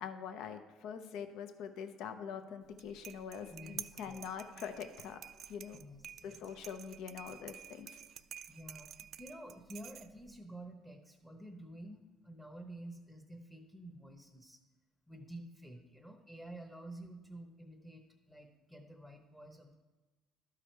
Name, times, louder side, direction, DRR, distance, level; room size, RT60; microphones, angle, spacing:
voice 1, 0.0-5.2 5.5-5.8 6.2-8.0, left 7 dB, 75° left, 8 dB, 0.7 m, -44 dB
sound 1, 2.6-10.4, right 9 dB, 60° right, 0.3 m, -50 dB
voice 2, 3.5-4.2 5.7-6.5 8.5-14.6 15.1-19.8, right 1 dB, 10° left, 3 dB, 0.9 m, -50 dB
12.0 x 4.9 x 4.5 m, 1.2 s
supercardioid pair, 90°, 0 cm